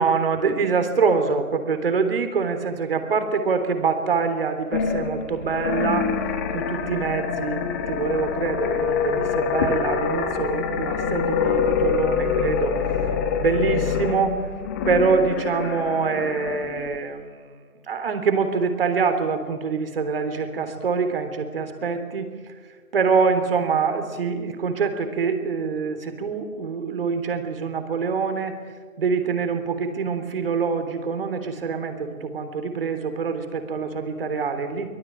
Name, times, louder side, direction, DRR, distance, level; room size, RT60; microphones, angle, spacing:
voice 1, 0.0-6.1 6.5-14.5 14.8-22.5 22.9-28.6 29.0-34.9, right 5 dB, 40° right, 8 dB, 3.5 m, -25 dB
sound 1, 4.7-17.0, left 6 dB, 10° left, 1.1 m, -25 dB
25.0 x 22.5 x 8.9 m, 1.5 s
figure-of-eight pair, 145°, 43 cm